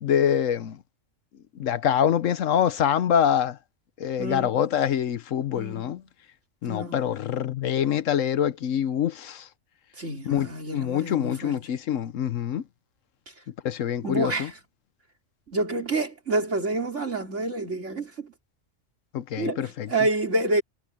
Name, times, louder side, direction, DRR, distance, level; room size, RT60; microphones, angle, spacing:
voice 1, 0.0-0.8 1.6-3.6 4.0-6.0 6.6-9.5 10.3-12.6 13.6-14.5 19.1-19.9, left 9 dB, 80° left, 1.2 m, -25 dB
voice 2, 4.2-4.6 5.5-5.9 6.7-7.0 10.0-11.6 14.0-14.5 15.5-18.3 19.4-20.6, right 2 dB, 65° right, 4.1 m, -28 dB
omnidirectional pair, 1.3 m